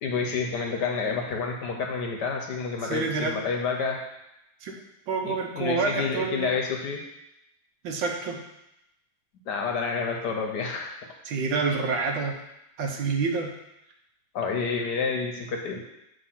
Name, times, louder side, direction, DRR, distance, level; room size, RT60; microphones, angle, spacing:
voice 1, 0.0-4.0 5.2-7.0 9.5-10.9 14.3-15.8, left 5 dB, 65° left, 1 dB, 1.2 m, -29 dB
voice 2, 2.8-3.4 4.6-6.5 7.8-8.4 11.2-12.4 12.8-13.5, right 4 dB, 70° right, 2 dB, 1.4 m, -28 dB
8.0 x 3.0 x 5.7 m, 0.86 s
omnidirectional pair, 2.2 m